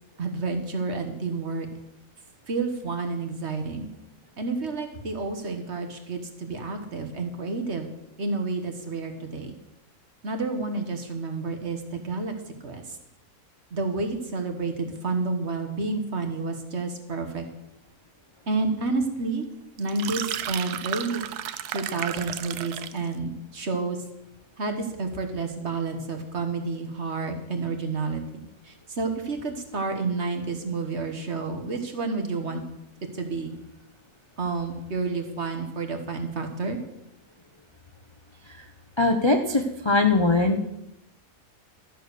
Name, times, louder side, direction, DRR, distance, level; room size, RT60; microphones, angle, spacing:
voice 1, 0.2-1.7 2.5-3.9 4.4-7.9 8.2-9.6 10.2-12.3 12.6-13.0 13.7-17.4 18.5-19.4 19.8-21.2 21.7-24.0 24.6-28.2 28.6-32.6 33.1-33.6 34.4-36.8, right 3 dB, 45° right, 5 dB, 1.5 m, -30 dB
sound 1, 19.8-23.1, right 11 dB, 85° right, 1.2 m, -33 dB
voice 2, 39.0-40.7, left 3 dB, 30° left, 4 dB, 0.6 m, -21 dB
13.0 x 6.5 x 6.7 m, 0.85 s
omnidirectional pair, 1.6 m